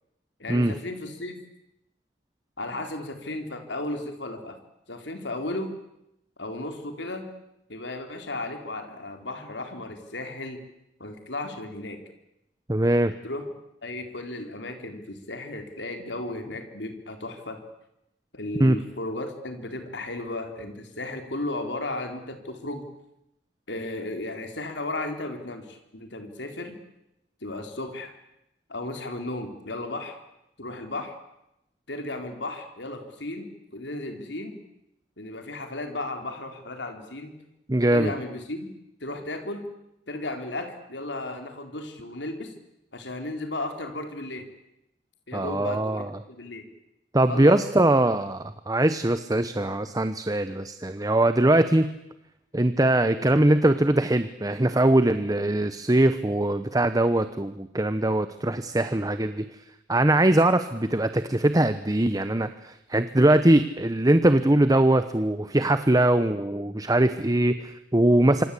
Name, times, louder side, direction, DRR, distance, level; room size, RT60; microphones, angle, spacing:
voice 1, 0.4-1.4 2.6-4.6 4.9-5.7 6.4-7.3 7.7-10.6 11.0-12.0 13.2-13.5 13.8-17.6 18.3-22.8 23.7-26.8 27.4-28.1 28.7-30.2 30.6-31.1 31.9-34.6 35.2-37.3 37.9-38.7 39.0-39.7 40.1-42.5 42.9-44.5 45.3-46.6 47.3-47.6 53.1-53.3, left 2 dB, 75° left, 6 dB, 3.9 m, -34 dB
voice 2, 12.7-13.1 18.6-18.8 37.7-38.1 45.3-46.1 47.1-51.9 52.5-59.4 59.9-68.4, right 1 dB, 20° right, 11 dB, 1.0 m, -21 dB
26.5 x 26.0 x 8.5 m, 0.86 s
head